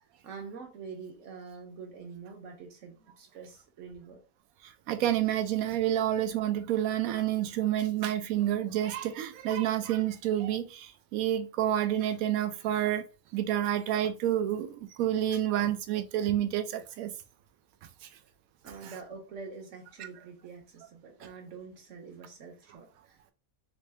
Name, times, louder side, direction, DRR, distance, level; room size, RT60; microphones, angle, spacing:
voice 1, 0.2-4.2 18.6-23.3, right 5 dB, 60° right, 1.2 m, -45 dB
voice 2, 4.9-13.0 13.3-17.1 18.8-18.9, right 11 dB, 75° right, 1.0 m, -29 dB
3.2 x 2.7 x 3.3 m
omnidirectional pair, 1.5 m